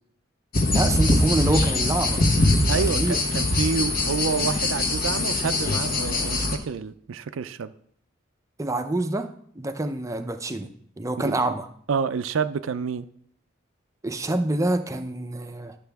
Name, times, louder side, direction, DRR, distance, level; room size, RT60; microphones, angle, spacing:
sound 1, 0.5-6.6, left 2 dB, 45° left, 1.1 m, -22 dB
voice 1, 0.7-2.2 2.9-3.2 8.6-9.3 9.6-10.7 11.0-11.7 14.0-15.8, right 2 dB, 15° right, 8 dB, 0.5 m, -26 dB
voice 2, 2.7-7.7 11.2-11.4 11.9-13.1, right 5 dB, 85° right, 11 dB, 0.4 m, -28 dB
11.0 x 6.8 x 3.5 m, 0.64 s
head